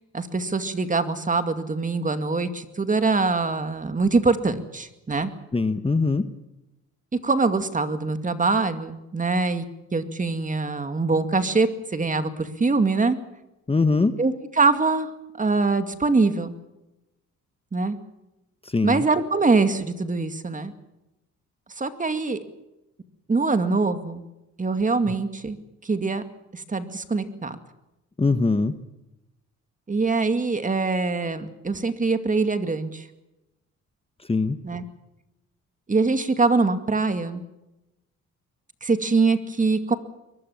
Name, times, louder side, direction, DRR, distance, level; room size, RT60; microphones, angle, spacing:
voice 1, 0.1-5.3 7.2-9.6 9.9-13.2 14.2-15.1 15.4-16.5 17.7-18.0 18.8-20.7 21.8-22.4 23.3-24.2 24.6-25.6 25.8-26.2 26.5-27.6 29.9-33.1 34.6-34.8 35.9-37.4 38.8-40.0, right 3 dB, 25° right, 9 dB, 2.4 m, -23 dB
voice 2, 5.5-6.3 13.7-14.2 18.6-19.0 28.2-28.8 34.3-34.6, left 3 dB, 20° left, 10 dB, 1.3 m, -22 dB
23.0 x 21.0 x 7.3 m, 0.94 s
cardioid pair, 90°, 30 cm